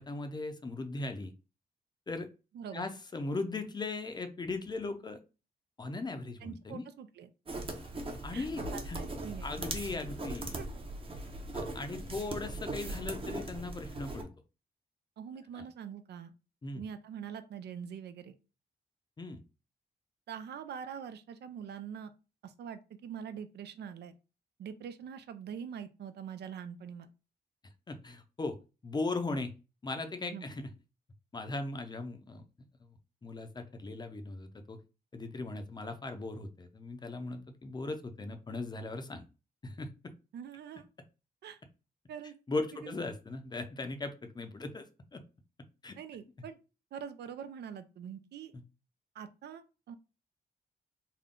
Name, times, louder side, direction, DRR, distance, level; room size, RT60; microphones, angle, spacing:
voice 1, 0.0-1.3 2.1-2.3 2.7-5.2 5.8-6.8 8.2-9.0 9.4-10.6 11.5-14.3 15.5-15.6 16.6-16.8 19.2-19.4 27.9-28.6 28.8-29.5 29.8-30.7 31.3-32.4 32.8-32.9 33.2-34.8 35.1-39.2 39.6-40.1 42.5-45.2 45.8-45.9 48.5-48.6, left 3 dB, 25° left, 8 dB, 0.5 m, -38 dB
voice 2, 2.5-2.9 6.4-7.3 8.3-9.5 10.6-10.7 15.2-16.3 16.7-18.4 20.3-22.1 22.4-24.1 24.6-27.1 30.3-30.5 40.3-40.9 41.4-41.6 42.1-42.3 42.8-43.0 46.0-46.6 46.9-48.5 49.1-49.9, right 8 dB, 90° right, 11 dB, 0.5 m, -44 dB
sound 1, 7.5-14.2, right 2 dB, 35° right, 0.8 m, -39 dB
3.7 x 2.2 x 3.6 m, 0.31 s
wide cardioid pair, 135°, 17 cm